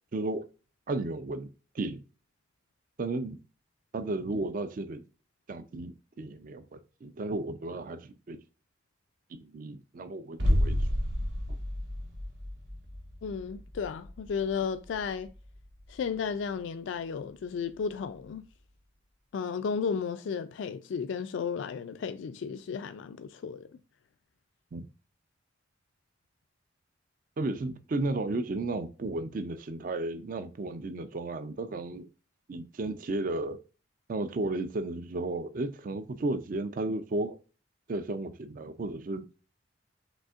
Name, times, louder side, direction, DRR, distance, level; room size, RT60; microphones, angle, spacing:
voice 1, 0.1-0.4 0.9-1.5 1.7-2.0 3.0-3.4 3.9-5.0 5.5-8.4 9.3-10.9 24.7-24.8 27.4-32.1 32.5-33.6 34.1-37.4 37.9-39.2, right 2 dB, 45° right, 0.4 m, -34 dB
sound 1, 10.4-16.1 16.4-16.5, equal, 65° right, 1.2 m, -31 dB
voice 2, 13.2-15.3 15.9-18.4 19.3-23.7, left 6 dB, 70° left, 0.3 m, -33 dB
5.2 x 3.4 x 2.4 m
head